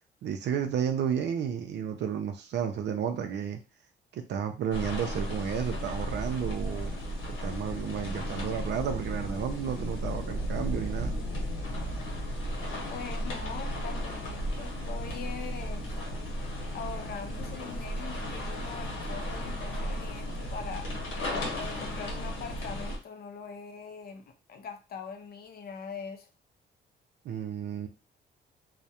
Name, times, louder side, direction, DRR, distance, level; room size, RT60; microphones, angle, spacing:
voice 1, 0.2-3.6 4.1-6.9 7.3-11.1 27.2-27.9, right 8 dB, 60° right, 0.4 m, -32 dB
sound 1, 4.7-23.0, equal, 80° left, 0.9 m, -34 dB
voice 2, 12.9-16.0 16.7-20.9 21.5-26.3, left 6 dB, 50° left, 0.5 m, -42 dB
2.3 x 2.0 x 2.7 m
cardioid pair, 90°, 20 cm